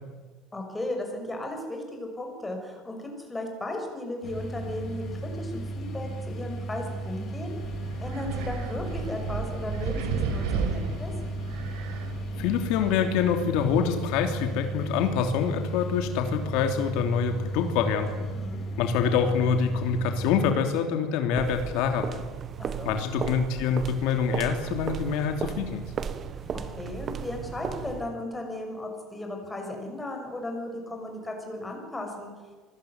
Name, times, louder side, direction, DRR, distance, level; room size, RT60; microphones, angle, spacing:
voice 1, 0.5-7.6 8.0-11.1 18.3-18.6 22.6-23.0 26.3-26.4 26.8-32.3, left 1 dB, 10° left, 3 dB, 6.3 m, -36 dB
sound 1, 4.2-20.5, right 1 dB, 35° left, 4.0 m, -35 dB
Wind, 7.6-12.9, right 5 dB, 80° right, 5.1 m, -33 dB
voice 2, 12.4-18.3 18.8-22.2 22.8-25.8, left 7 dB, 65° left, 5 dB, 3.0 m, -26 dB
sound 2, 21.3-28.2, right 7 dB, 30° right, 1.4 m, -35 dB
26.0 x 20.5 x 9.6 m, 1.4 s
cardioid pair, 160°, 0 cm